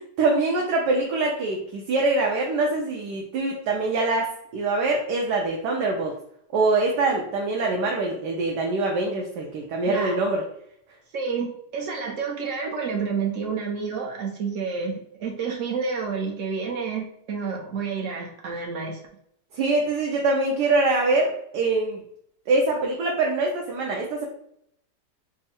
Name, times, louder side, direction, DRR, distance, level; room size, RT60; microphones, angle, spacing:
voice 1, 0.0-6.1 6.5-10.4 19.5-22.0 22.5-24.2, right 3 dB, 80° right, 0 dB, 1.3 m, -24 dB
voice 2, 9.8-10.2 11.1-19.0, right 5 dB, 60° right, 0 dB, 1.0 m, -29 dB
3.6 x 2.0 x 4.2 m, 0.71 s
omnidirectional pair, 1.8 m